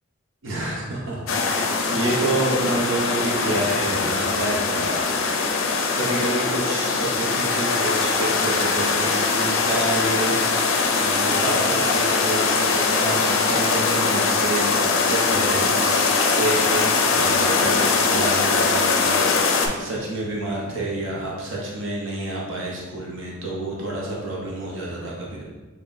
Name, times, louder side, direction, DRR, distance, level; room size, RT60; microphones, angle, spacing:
voice 1, 0.4-5.3 5.6-5.7 5.9-25.4, right 2 dB, 60° right, -4 dB, 0.7 m, -28 dB
sound 1, 1.3-19.7, left 4 dB, 65° left, 0.4 m, -21 dB
5.4 x 2.1 x 2.5 m, 1.2 s
head